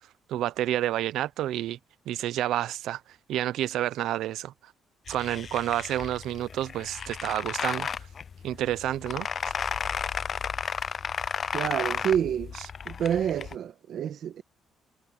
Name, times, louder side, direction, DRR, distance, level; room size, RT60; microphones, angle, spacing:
voice 1, 0.3-1.8 2.1-3.0 3.3-4.7 5.1-7.9 8.4-9.5, right 13 dB, 80° right, 0.5 m, -29 dB
sound 1, 5.1-13.6, left 6 dB, 40° left, 0.4 m, -33 dB
voice 2, 11.5-12.5 12.8-14.4, right 9 dB, 60° right, 1.5 m, -28 dB
cardioid pair, 150°, 0 cm